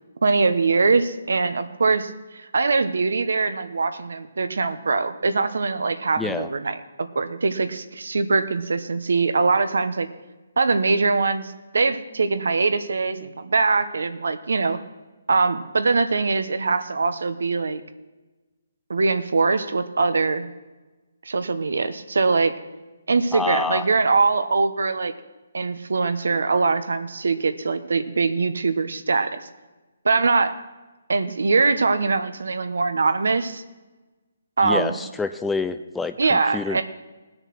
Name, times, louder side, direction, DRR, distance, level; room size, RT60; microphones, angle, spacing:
voice 1, 0.2-10.1 10.6-14.8 15.3-17.8 18.9-20.5 21.2-22.5 23.1-25.1 25.5-29.4 30.0-30.5 31.1-33.6 34.6-35.0 36.2-36.8, right 4 dB, 75° right, 10 dB, 1.1 m, -22 dB
voice 2, 6.2-6.5 23.3-23.9 34.6-36.8, left 4 dB, 5° left, 10 dB, 0.4 m, -27 dB
18.0 x 6.5 x 6.2 m, 1.2 s
hypercardioid pair, 160°, 0 cm